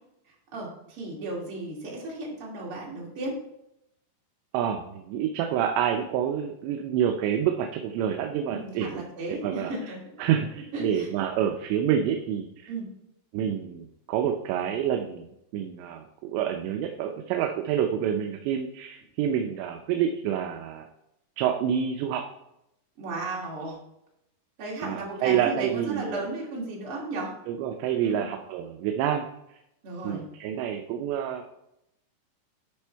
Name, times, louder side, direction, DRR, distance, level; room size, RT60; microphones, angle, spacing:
voice 1, 0.5-3.4 8.5-10.0 10.7-11.1 12.7-12.9 23.0-23.8 24.6-27.3 28.0-28.3 29.8-30.2, right 2 dB, 35° right, -3 dB, 2.6 m, -34 dB
voice 2, 4.5-9.0 9.3-9.7 10.2-12.7 13.3-15.3 15.5-20.8 21.4-22.3 24.8-26.2 27.5-29.3 30.0-31.4, right 9 dB, 80° right, 4 dB, 2.9 m, -28 dB
10.5 x 5.3 x 4.5 m, 0.81 s
omnidirectional pair, 5.1 m